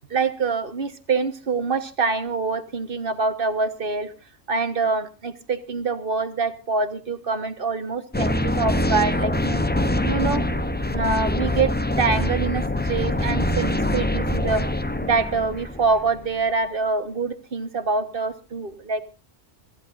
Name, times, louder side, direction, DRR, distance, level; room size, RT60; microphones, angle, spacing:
voice 1, 0.1-4.1 4.5-9.6 10.0-10.4 10.9-14.7 15.0-19.0, right 4 dB, 45° right, 9 dB, 1.5 m, -25 dB
sound 1, 8.1-16.3, left 1 dB, 10° left, 0.6 m, -24 dB
26.0 x 15.0 x 2.6 m, 0.31 s
omnidirectional pair, 1.3 m